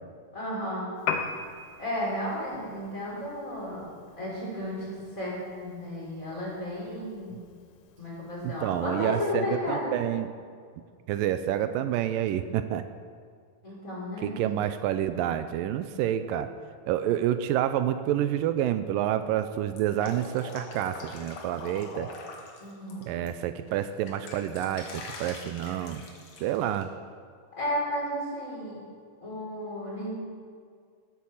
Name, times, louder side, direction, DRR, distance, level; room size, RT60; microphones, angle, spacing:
voice 1, 0.3-0.9 1.8-3.9 4.2-7.4 8.0-10.0 13.6-14.5 22.6-23.1 27.6-28.8 29.2-30.3, left 1 dB, 20° left, -6 dB, 5.5 m, -33 dB
Piano, 1.0-9.0, left 6 dB, 75° left, 2.3 m, -40 dB
voice 2, 8.4-10.3 11.1-12.8 14.2-16.5 16.9-22.1 23.1-26.0 26.4-26.9, right 11 dB, 85° right, 10 dB, 2.3 m, -28 dB
Drip, 19.7-23.3 23.7-26.8, left 3 dB, 55° left, 2.8 m, -43 dB
16.0 x 9.1 x 7.2 m, 2.1 s
omnidirectional pair, 4.0 m